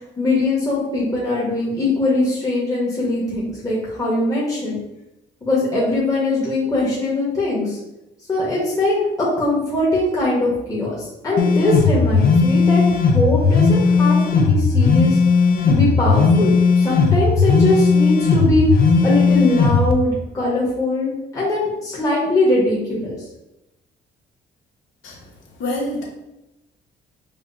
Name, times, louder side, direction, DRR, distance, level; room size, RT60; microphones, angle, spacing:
voice 1, 0.2-4.8 5.4-7.8 8.3-8.9 9.4-12.8 13.1-15.2 15.7-18.7 19.0-23.2, left 2 dB, 15° left, -7 dB, 1.2 m, -21 dB
sound 1, 11.4-19.9, left 4 dB, 50° left, 0.5 m, -16 dB
voice 2, 25.0-26.0, left 1 dB, 75° left, -2 dB, 1.1 m, -28 dB
4.9 x 2.2 x 2.6 m, 0.93 s
cardioid pair, 90°, 20 cm